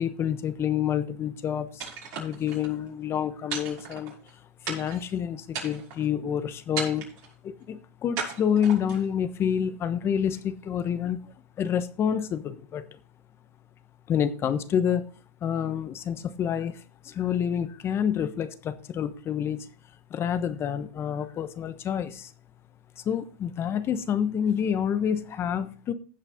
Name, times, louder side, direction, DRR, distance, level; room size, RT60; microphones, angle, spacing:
voice 1, 0.0-1.8 2.2-4.1 4.6-7.1 7.4-11.3 11.6-12.8 14.1-15.0 15.4-19.7 20.1-22.3 23.0-25.9, left 8 dB, 30° left, 11 dB, 1.1 m, -28 dB
sound 1, 1.8-2.7 3.5-4.3 4.7-5.1 5.5-6.1 6.8-7.3 8.2-9.1, right 6 dB, 50° right, 5.8 m, -35 dB
16.0 x 5.7 x 3.7 m, 0.40 s
hypercardioid pair, 120°, 8 cm